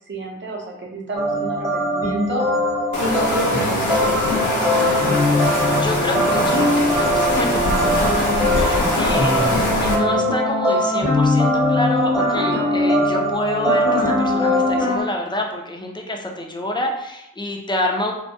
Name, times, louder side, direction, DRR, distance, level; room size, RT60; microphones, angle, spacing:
voice 1, 0.1-2.4 3.0-5.0 9.1-9.7 10.0-10.2, right 1 dB, 40° right, -1 dB, 0.7 m, -29 dB
sound 1, 1.2-15.0, left 1 dB, 10° right, 0.8 m, -20 dB
sound 2, 2.9-9.9, left 2 dB, 70° left, 0.7 m, -23 dB
voice 2, 5.3-9.4 9.8-18.1, left 1 dB, 15° left, 1 dB, 0.5 m, -27 dB
2.2 x 2.2 x 2.8 m, 0.81 s
cardioid pair, 70°, 30 cm